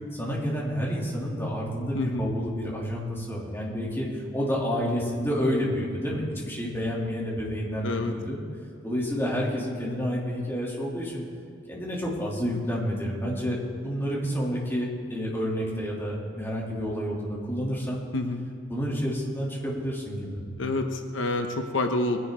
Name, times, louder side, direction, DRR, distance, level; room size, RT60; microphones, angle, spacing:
voice 1, 0.1-8.4 8.8-11.2 11.7-18.0 18.7-20.4, equal, 15° left, -5 dB, 2.9 m, -29 dB
voice 2, 1.9-2.3 7.8-8.1 18.1-18.4 20.6-22.2, left 2 dB, 85° left, 5 dB, 1.0 m, -28 dB
21.5 x 10.5 x 3.7 m, 2.5 s
head